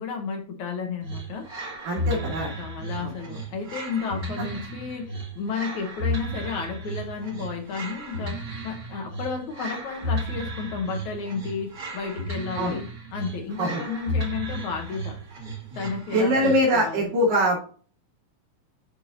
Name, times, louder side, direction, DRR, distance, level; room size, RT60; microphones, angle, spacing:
voice 1, 0.0-15.2 15.7-17.1, left 5 dB, 65° left, 3 dB, 2.3 m, -33 dB
sound 1, 1.0-16.9, equal, 30° right, 1.9 m, -34 dB
voice 2, 1.8-2.5 3.0-3.1 12.6-12.8 13.6-13.8 16.1-17.7, equal, 75° right, -6 dB, 4.2 m, -23 dB
12.0 x 4.7 x 2.6 m, 0.40 s
omnidirectional pair, 3.9 m